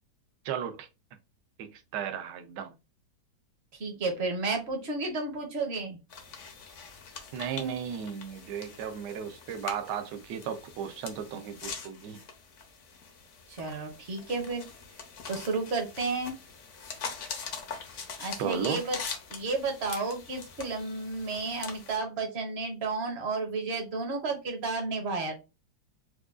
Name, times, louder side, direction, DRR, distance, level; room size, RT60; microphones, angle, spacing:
voice 1, 0.4-0.9 1.6-2.7 7.3-12.2 18.4-18.8, right 8 dB, 70° right, 1.1 m, -35 dB
voice 2, 3.8-6.0 13.5-14.7 15.3-16.4 18.2-19.0 19.3-25.3, right 3 dB, 50° right, 0.8 m, -32 dB
sound 1, 6.1-22.0, left 5 dB, 60° left, 0.8 m, -43 dB
4.8 x 2.2 x 2.4 m
omnidirectional pair, 2.1 m